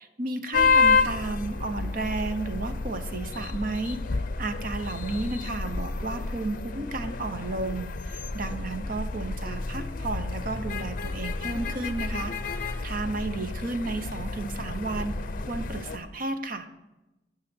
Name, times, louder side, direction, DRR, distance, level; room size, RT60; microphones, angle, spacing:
voice 1, 0.2-15.2 15.4-16.7, right 2 dB, 50° right, 8 dB, 0.9 m, -33 dB
sound 1, 0.5-16.0, left 4 dB, 50° left, 0.6 m, -30 dB
11.5 x 6.3 x 6.2 m, 0.99 s
head